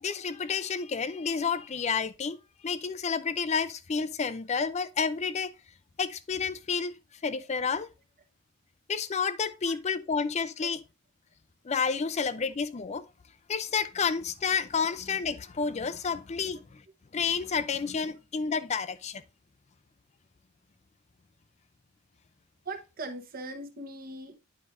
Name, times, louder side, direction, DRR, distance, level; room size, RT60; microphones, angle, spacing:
voice 1, 0.0-2.4 2.6-5.5 6.0-6.9 7.2-7.9 8.9-10.8 11.6-13.0 13.5-16.8 17.1-19.2, left 5 dB, 30° left, 0.4 m, -30 dB
voice 2, 22.6-24.4, right 2 dB, 40° right, 1.0 m, -40 dB
9.9 x 4.9 x 2.5 m
head